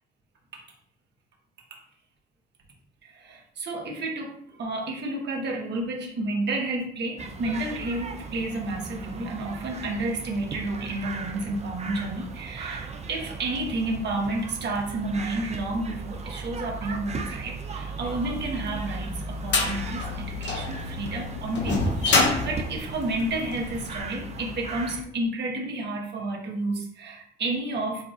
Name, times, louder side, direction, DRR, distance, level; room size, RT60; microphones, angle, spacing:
voice 1, 3.2-28.0, right 2 dB, 60° right, 0 dB, 1.3 m, -31 dB
sound 1, 7.2-25.0, right 2 dB, 35° right, 0.6 m, -37 dB
sound 2, 18.5-23.8, left 3 dB, 65° left, 0.9 m, -26 dB
7.0 x 2.5 x 2.5 m, 0.64 s
cardioid pair, 90°, 20 cm